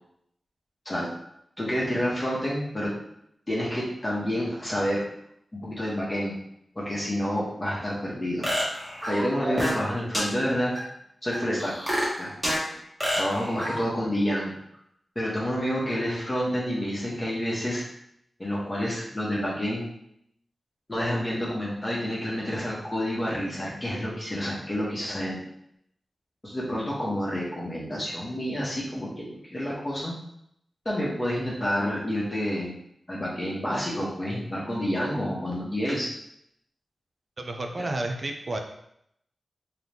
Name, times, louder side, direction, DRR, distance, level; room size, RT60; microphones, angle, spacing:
voice 1, 1.6-2.9 3.5-5.0 5.5-6.3 6.7-8.5 9.1-10.7 11.2-11.7 12.2-12.3 13.1-14.6 15.1-17.8 18.4-19.8 20.9-25.4 26.4-30.1 30.8-32.8 33.1-36.1 37.8-38.0, equal, 25° left, -5 dB, 1.1 m, -29 dB
sound 1, 8.4-9.9 10.1-10.2 10.7-10.8 11.3-12.6 13.0-13.8, equal, 10° right, 1.3 m, -28 dB
voice 2, 37.4-38.6, right 2 dB, 40° right, 4 dB, 0.4 m, -31 dB
3.8 x 2.9 x 3.4 m, 0.74 s
wide cardioid pair, 120°, 0 cm